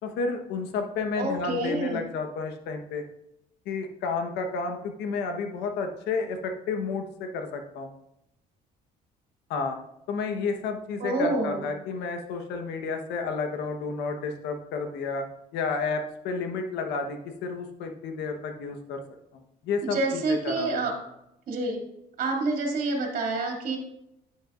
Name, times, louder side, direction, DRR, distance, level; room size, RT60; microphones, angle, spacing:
voice 1, 0.0-3.0 3.6-7.9 9.5-9.8 10.1-15.2 15.5-19.0 19.3-20.9, left 4 dB, 90° left, 5 dB, 1.3 m, -31 dB
voice 2, 1.2-2.0 11.0-11.7 19.8-20.9 21.5-21.8 22.2-23.8, right 2 dB, 55° right, 0 dB, 2.8 m, -27 dB
10.0 x 8.8 x 2.6 m, 0.82 s
cardioid pair, 110°, 17 cm